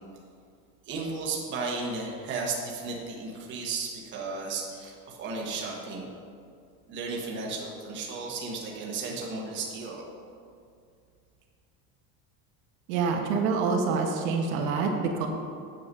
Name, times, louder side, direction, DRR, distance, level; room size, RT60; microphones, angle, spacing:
voice 1, 0.9-6.1 6.9-10.0, right 4 dB, 25° right, -2 dB, 1.2 m, -34 dB
voice 2, 12.9-15.3, right 4 dB, 80° right, 2 dB, 1.4 m, -26 dB
8.1 x 6.8 x 5.4 m, 2.3 s
cardioid pair, 175°, 41 cm